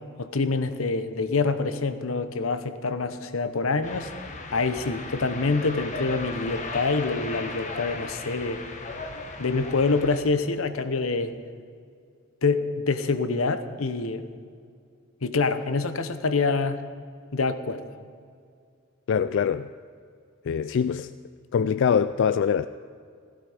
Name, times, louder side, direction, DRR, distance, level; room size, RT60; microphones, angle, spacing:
voice 1, 0.2-4.1 4.5-8.6 9.4-11.3 12.4-14.3 15.2-16.8 17.3-17.8, left 3 dB, 90° left, 0.9 m, -26 dB
sound 1, 3.8-10.2, left 3 dB, 35° left, 1.5 m, -37 dB
voice 2, 19.1-19.7 20.5-21.1 21.5-22.7, left 7 dB, 60° left, 0.3 m, -23 dB
16.5 x 15.0 x 5.0 m
head